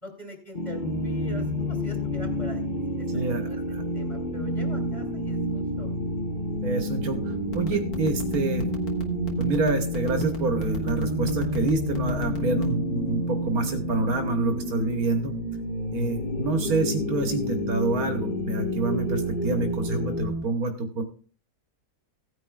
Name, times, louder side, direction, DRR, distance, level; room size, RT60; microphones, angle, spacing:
voice 1, 0.0-2.6 3.0-3.1 3.3-6.0, equal, 20° left, 1 dB, 2.9 m, -43 dB
sound 1, 0.5-20.3, equal, 35° left, 0.9 m, -32 dB
sound 2, 0.8-20.5, equal, 10° right, 0.9 m, -32 dB
voice 2, 3.1-3.8 6.6-8.7 9.4-15.4 15.9-21.0, right 3 dB, 90° right, 5 dB, 1.6 m, -27 dB
sound 3, 7.4-12.8, left 2 dB, 85° left, 2.0 m, -37 dB
17.0 x 9.5 x 2.3 m, 0.40 s
omnidirectional pair, 1.5 m